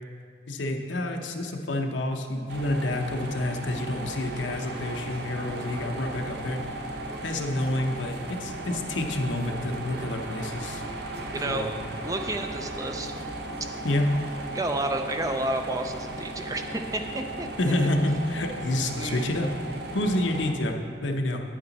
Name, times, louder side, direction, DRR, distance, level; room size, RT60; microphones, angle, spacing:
voice 1, 0.5-6.6 7.2-10.8 11.5-11.7 13.8-14.1 17.6-19.5 19.9-21.4, left 1 dB, 75° left, 3 dB, 0.8 m, -28 dB
sound 1, 2.5-20.5, right 1 dB, 55° right, 0.8 m, -36 dB
voice 2, 11.3-11.7 12.0-13.1 14.5-17.9 18.9-19.8, right 2 dB, 20° right, 5 dB, 0.4 m, -31 dB
9.0 x 8.6 x 4.0 m, 2.3 s
head